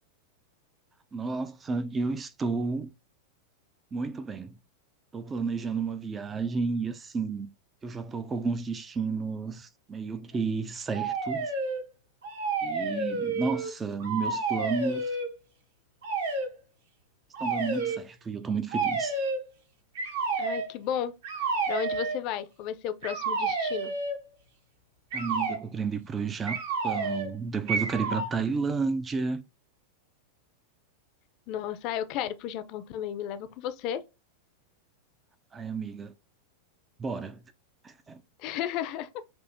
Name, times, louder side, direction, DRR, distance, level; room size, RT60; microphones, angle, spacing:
voice 1, 1.1-2.9 3.9-4.6 5.1-7.5 7.8-11.5 12.6-15.0 17.4-19.1 25.1-29.4 35.5-36.1 37.0-37.4 37.8-38.2, right 4 dB, 20° right, 0.4 m, -32 dB
sound 1, 10.9-11.8 12.2-13.7 14.0-15.3 16.0-16.5 17.3-18.0 18.7-19.4 20.0-20.7 21.2-22.2 23.0-24.2 25.1-25.6 26.5-27.3 27.7-28.3, right 3 dB, 60° right, 1.0 m, -30 dB
voice 2, 20.4-21.1 21.7-23.9 31.5-34.0 38.4-39.1, left 10 dB, 40° left, 0.5 m, -33 dB
6.0 x 2.7 x 2.6 m
figure-of-eight pair, 90°, 0 cm